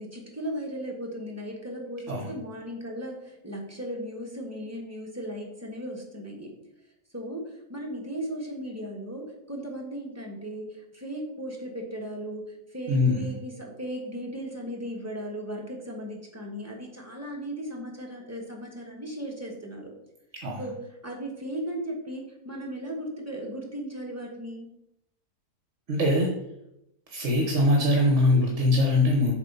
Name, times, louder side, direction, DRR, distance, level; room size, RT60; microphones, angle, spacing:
voice 1, 0.0-6.5 7.1-12.4 12.7-19.9 20.6-24.7, equal, 10° right, -2 dB, 1.2 m, -36 dB
voice 2, 12.9-13.2 20.4-20.6 25.9-26.3 27.1-29.3, left 1 dB, 55° right, 0 dB, 1.2 m, -22 dB
7.3 x 3.2 x 5.4 m, 0.84 s
omnidirectional pair, 1.6 m